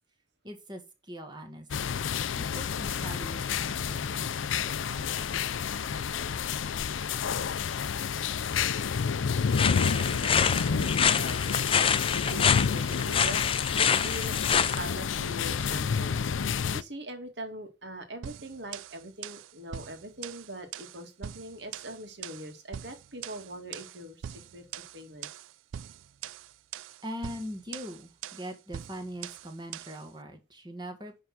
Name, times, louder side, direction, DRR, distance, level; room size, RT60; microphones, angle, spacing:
voice 1, 0.4-2.0 2.3-4.3 4.6-5.5 27.0-31.2, equal, 25° right, 5 dB, 1.8 m, -42 dB
sound 1, 1.7-16.8, left 6 dB, 80° left, 0.5 m, -30 dB
sound 2, 9.5-14.8, left 7 dB, 30° left, 0.4 m, -26 dB
voice 2, 9.8-25.3, right 1 dB, 60° right, 6 dB, 2.1 m, -42 dB
sound 3, 18.2-30.1, right 9 dB, 85° right, 0.4 m, -43 dB
10.0 x 3.7 x 6.0 m, 0.29 s
head